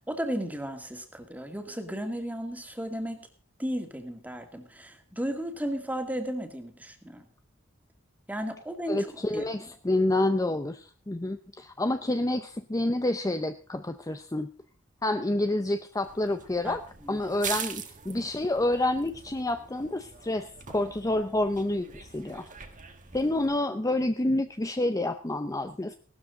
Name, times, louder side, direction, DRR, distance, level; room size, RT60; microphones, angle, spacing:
voice 1, 0.0-3.2 3.6-7.3 8.3-9.5 16.6-17.2, right 1 dB, 10° right, 5 dB, 2.2 m, -34 dB
voice 2, 8.9-14.5 15.0-16.8 17.1-22.5 23.1-26.0, left 1 dB, 15° left, 9 dB, 0.7 m, -28 dB
sound 1, 16.0-23.6, right 7 dB, 40° right, 1.7 m, -42 dB
17.0 x 13.0 x 3.9 m, 0.40 s
head